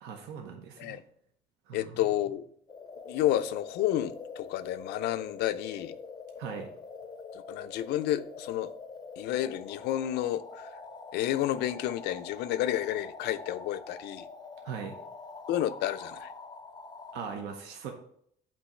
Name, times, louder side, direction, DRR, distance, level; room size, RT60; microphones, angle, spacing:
voice 1, 0.0-1.0 1.7-1.9 6.4-6.7 14.6-15.0 17.1-17.9, right 6 dB, 80° right, 0.8 m, -40 dB
voice 2, 1.7-2.4 3.1-6.0 7.3-8.7 9.2-10.7 11.1-14.3 15.5-16.3, left 12 dB, 80° left, 0.4 m, -30 dB
sound 1, 2.7-17.4, left 4 dB, 25° left, 0.5 m, -45 dB
8.5 x 2.8 x 4.3 m
cardioid pair, 110°, 17 cm